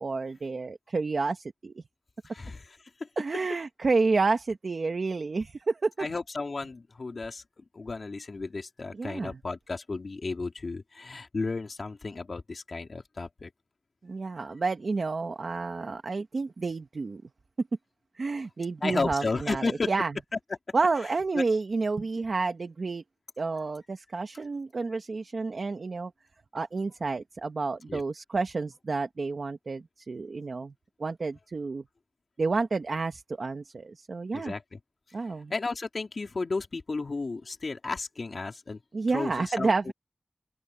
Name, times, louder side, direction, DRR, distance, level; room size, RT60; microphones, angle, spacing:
voice 1, 0.0-1.8 3.2-6.1 8.9-9.4 14.0-17.2 18.2-20.2 20.7-23.0 23.4-26.1 26.5-30.7 31.0-31.8 32.4-34.5 35.1-35.5 38.9-39.9, right 3 dB, 85° right, 1.2 m, -30 dB
voice 2, 2.3-2.7 3.0-3.1 6.0-7.4 7.7-13.5 18.8-19.9 21.3-21.4 27.9-28.0 34.3-34.8 35.5-38.8 39.1-39.9, left 3 dB, 75° left, 2.7 m, -33 dB
open air
wide cardioid pair, 60°, 0 cm